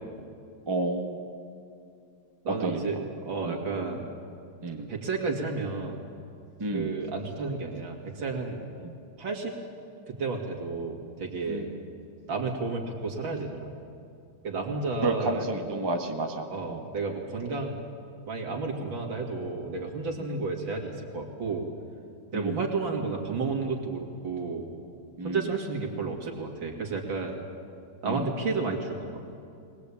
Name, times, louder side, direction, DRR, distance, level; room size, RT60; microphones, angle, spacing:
voice 1, 0.7-1.2 2.6-3.0 3.4-3.6 4.6-4.9 6.6-7.0 8.8-8.9 11.5-11.8 15.0-16.8 20.2-20.4 22.3-22.6 25.2-25.4 28.0-28.3, right 2 dB, 15° right, 2 dB, 1.2 m, -31 dB
voice 2, 2.4-4.1 4.7-6.0 6.7-8.7 9.2-9.6 10.1-11.7 12.3-13.7 14.4-15.5 16.5-17.8 18.3-21.7 22.3-24.7 25.2-27.4 28.0-29.0, right 4 dB, 65° right, 2 dB, 3.1 m, -32 dB
22.0 x 19.5 x 8.6 m, 2.5 s
omnidirectional pair, 2.3 m